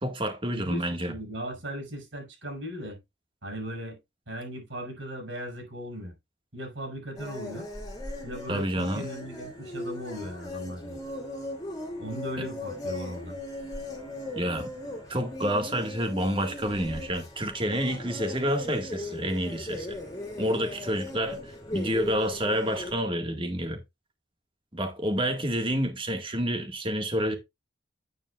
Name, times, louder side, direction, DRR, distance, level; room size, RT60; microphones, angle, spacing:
voice 1, 0.0-1.1 8.5-9.1 14.3-14.7 15.1-20.0 20.4-21.4 21.7-23.8 24.7-27.3, equal, 25° right, 1.7 m, -28 dB
voice 2, 0.5-3.0 3.4-4.0 4.3-6.1 6.5-7.7 8.2-11.0 12.0-13.4, equal, 80° right, 5.5 m, -38 dB
sound 1, 7.2-22.9, left 1 dB, 20° left, 2.6 m, -38 dB
9.7 x 8.6 x 2.4 m
head